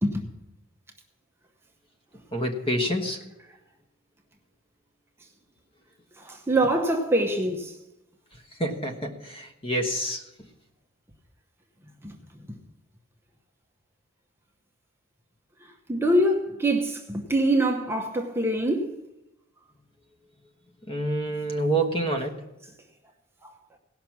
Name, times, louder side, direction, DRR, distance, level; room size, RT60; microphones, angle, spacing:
voice 1, 2.3-3.2 8.6-10.2 20.9-22.4, right 1 dB, 25° left, 1.2 m, -27 dB
voice 2, 6.2-7.8 12.0-12.2 12.5-12.6 15.6-19.0 23.4-23.5, right 1 dB, 10° right, 0.9 m, -25 dB
17.5 x 5.9 x 6.0 m
head